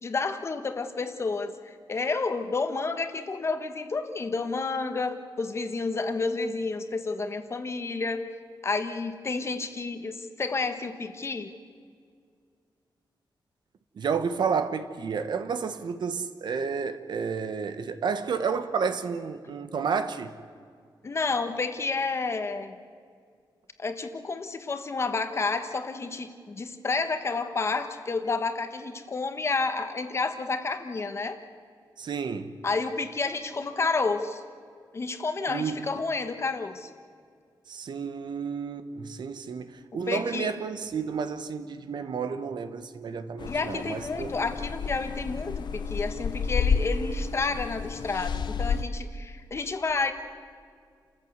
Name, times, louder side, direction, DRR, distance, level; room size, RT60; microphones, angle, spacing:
voice 1, 0.0-8.2 8.6-11.5 21.0-22.8 23.8-31.4 32.6-34.4 34.9-36.9 40.1-40.5 43.5-50.1, left 4 dB, 35° left, 1.3 m, -30 dB
voice 2, 13.9-20.3 32.0-32.6 35.5-35.7 37.7-44.3, right 6 dB, 65° right, 1.2 m, -31 dB
sound 1, 43.4-48.8, left 5 dB, 65° left, 0.8 m, -30 dB
29.5 x 14.0 x 8.1 m
wide cardioid pair, 180°, 8 cm